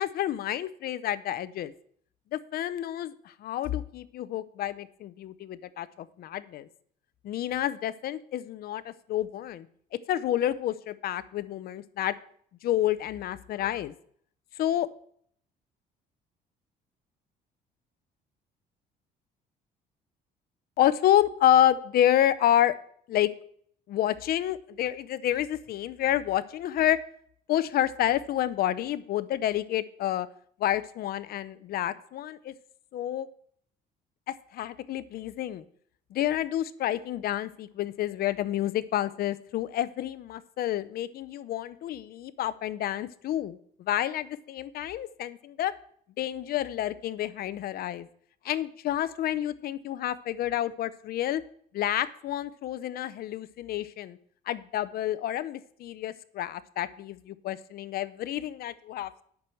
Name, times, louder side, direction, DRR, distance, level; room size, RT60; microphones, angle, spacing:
voice 1, 0.0-1.7 2.3-6.7 7.2-9.7 10.1-12.1 12.6-13.9 14.6-14.9 20.8-22.7 23.1-23.3 23.9-27.0 27.5-30.3 30.6-32.5 32.9-33.3 34.3-35.6 36.1-45.7 46.2-48.1 48.4-51.4 51.7-54.2 54.5-59.2, left 12 dB, 65° left, 16 dB, 0.7 m, -29 dB
8.5 x 6.1 x 7.7 m, 0.62 s
cardioid pair, 110°, 17 cm